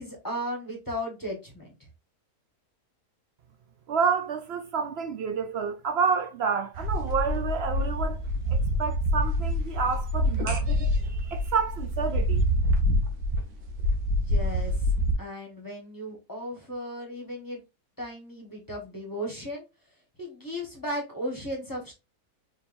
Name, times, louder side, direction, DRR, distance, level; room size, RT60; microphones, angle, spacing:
voice 1, 0.0-1.7 14.1-14.9 15.2-17.6 18.0-19.6 20.2-21.9, equal, 15° left, 1.3 m, -36 dB
voice 2, 3.9-8.2 8.5-12.4, right 6 dB, 65° right, 0.6 m, -29 dB
sound 1, 6.7-15.1, equal, 85° right, 1.4 m, -26 dB
4.4 x 3.9 x 2.6 m
omnidirectional pair, 1.6 m